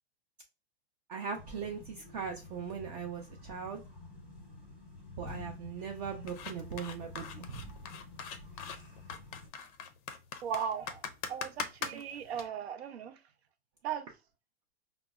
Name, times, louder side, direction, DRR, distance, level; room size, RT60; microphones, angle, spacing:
voice 1, 1.1-3.8 5.2-7.6 11.9-12.0, right 6 dB, 40° right, 0.5 m, -39 dB
sound 1, 1.3-9.5, left 3 dB, 5° right, 0.9 m, -49 dB
sound 2, 6.3-12.4, left 6 dB, 35° left, 0.4 m, -41 dB
voice 2, 10.4-11.0 11.3-13.2 13.8-14.1, right 8 dB, 85° right, 0.6 m, -37 dB
5.0 x 2.0 x 2.3 m
hypercardioid pair, 145°, 31 cm